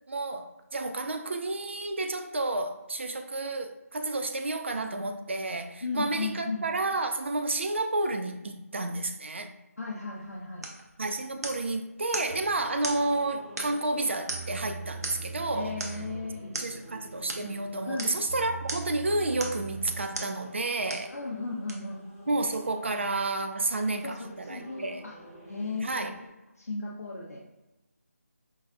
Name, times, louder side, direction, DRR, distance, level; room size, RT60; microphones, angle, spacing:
voice 1, 0.1-9.5 11.0-15.8 16.6-21.1 22.3-25.0 25.8-26.1, right 2 dB, 50° right, 6 dB, 0.4 m, -31 dB
voice 2, 5.8-6.7 9.8-10.7 15.5-16.9 17.8-18.1 21.1-22.6 24.0-25.2 25.5-26.1 26.6-27.4, left 3 dB, 70° left, -3 dB, 0.6 m, -36 dB
sound 1, 10.1-26.3, equal, 20° right, 0.7 m, -52 dB
sound 2, 10.6-10.8 11.4-11.7 12.1-12.3 12.8-13.0 13.6-13.9 14.3-14.6 15.0-15.3 15.8-16.0 16.5-16.7 17.3-17.5 18.0-18.2 18.7-19.0 19.4-19.7 20.1-20.4 20.9-21.1 21.7-21.8, right 2 dB, 90° right, 0.8 m, -37 dB
sound 3, 12.3-20.4, right 3 dB, 10° left, 0.9 m, -43 dB
5.3 x 2.2 x 2.4 m, 1.0 s
figure-of-eight pair, 170°, 8 cm